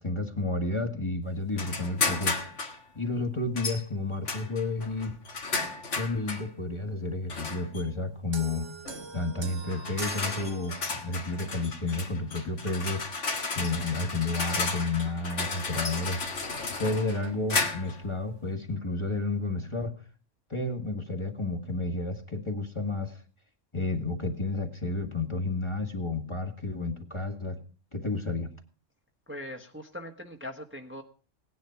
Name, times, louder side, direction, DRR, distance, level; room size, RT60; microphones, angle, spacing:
voice 1, 0.0-2.4 2.9-5.2 6.0-8.7 9.1-13.0 13.5-16.2 16.8-19.9 20.5-23.2 23.7-27.6 27.9-28.5, left 2 dB, 25° left, 4 dB, 1.7 m, -31 dB
sound 1, 1.6-2.8 3.6-3.8 4.3-6.5 7.3-7.8 8.9-9.1 9.7-18.0, left 4 dB, 70° left, 2.1 m, -33 dB
sound 2, 8.3-11.2, right 4 dB, 25° right, 0.8 m, -42 dB
voice 2, 29.3-31.0, left 1 dB, 10° right, 3 dB, 1.3 m, -41 dB
17.5 x 10.5 x 5.8 m, 0.38 s
omnidirectional pair, 1.3 m